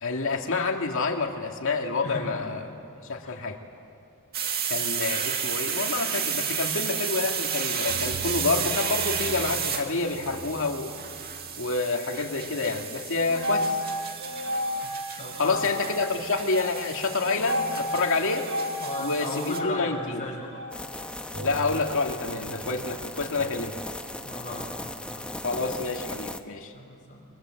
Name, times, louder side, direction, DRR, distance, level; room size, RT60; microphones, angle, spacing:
voice 1, 0.0-2.7 3.1-3.6 4.7-10.9 11.6-13.8 15.4-18.5 19.0-20.2 21.4-23.7 25.4-26.7, left 3 dB, 65° left, 2 dB, 2.3 m, -28 dB
voice 2, 2.0-2.5 3.2-3.4 14.8-15.6 18.8-20.5 24.2-25.4 26.7-27.3, left 1 dB, 35° left, -2 dB, 6.7 m, -37 dB
sound 1, 4.3-19.6, right 7 dB, 45° right, 1.9 m, -32 dB
sound 2, 7.9-11.7 12.0-12.6 13.2-24.5, left 1 dB, 60° right, 4.6 m, -35 dB
sound 3, 20.7-26.4, left 1 dB, 5° left, 0.8 m, -37 dB
29.0 x 23.0 x 7.9 m, 2.5 s
head